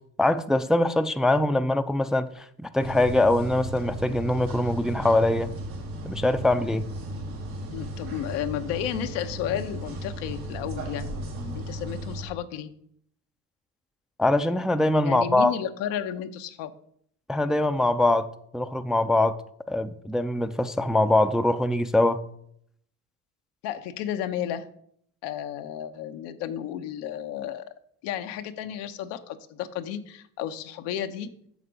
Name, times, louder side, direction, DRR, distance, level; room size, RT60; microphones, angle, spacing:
voice 1, 0.2-5.5 6.0-6.8 14.2-15.5 17.3-18.3 18.5-19.4 19.7-22.2, left 1 dB, ahead, 0.5 m, -23 dB
sound 1, 2.8-12.2, equal, 90° right, 2.4 m, -35 dB
voice 2, 7.7-11.1 11.5-12.7 15.0-16.7 23.6-24.7 25.2-27.6 28.0-31.3, left 10 dB, 75° left, 0.9 m, -32 dB
8.3 x 6.7 x 5.1 m
hypercardioid pair, 70°, 42 cm